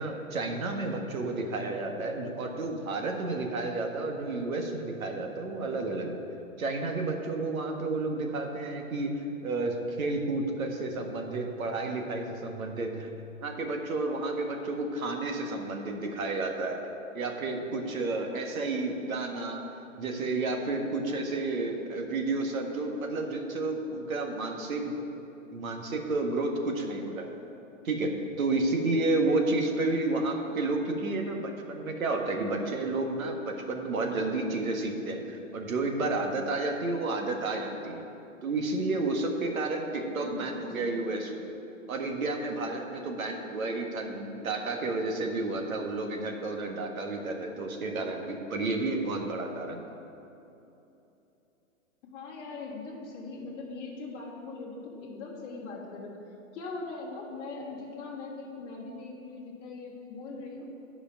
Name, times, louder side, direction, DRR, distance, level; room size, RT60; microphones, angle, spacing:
voice 1, 0.0-6.2 6.6-13.1 13.4-16.8 17.1-19.6 20.0-25.1 25.5-27.2 27.8-38.0 38.4-41.4 41.9-49.8, right 2 dB, 80° right, 2 dB, 1.6 m, -31 dB
voice 2, 40.2-41.0 52.0-56.1 56.5-60.6, left 3 dB, 20° left, -7 dB, 1.5 m, -40 dB
11.0 x 5.0 x 5.7 m, 2.9 s
hypercardioid pair, 170°, 41 cm